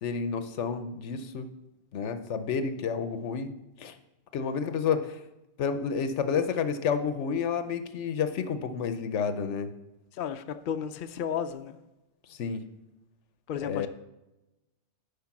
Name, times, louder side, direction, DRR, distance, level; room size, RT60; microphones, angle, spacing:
voice 1, 0.0-1.5 1.9-3.5 3.8-4.0 4.3-5.2 5.6-9.7 12.3-12.6 13.6-13.9, left 6 dB, 80° left, 1.0 m, -30 dB
voice 2, 10.1-11.8 13.5-13.9, left 8 dB, 55° left, 0.6 m, -33 dB
10.5 x 5.1 x 5.9 m
omnidirectional pair, 1.2 m